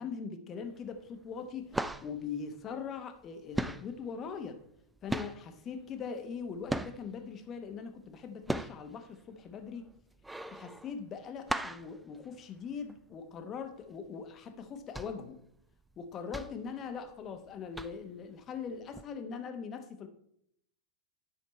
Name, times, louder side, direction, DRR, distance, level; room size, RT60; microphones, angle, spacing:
voice 1, 0.0-4.6 5.0-9.9 10.5-15.4 16.0-20.1, left 6 dB, 30° left, 7 dB, 1.0 m, -41 dB
sound 1, 0.6-1.1 1.3-3.3 3.5-7.3 7.7-13.0 13.4-13.5 13.8-14.1 14.6-17.4 17.7-18.2 18.9-19.0, right 1 dB, 5° right, 0.3 m, -38 dB
9.3 x 5.7 x 4.3 m, 0.72 s
figure-of-eight pair, 90°, 0 cm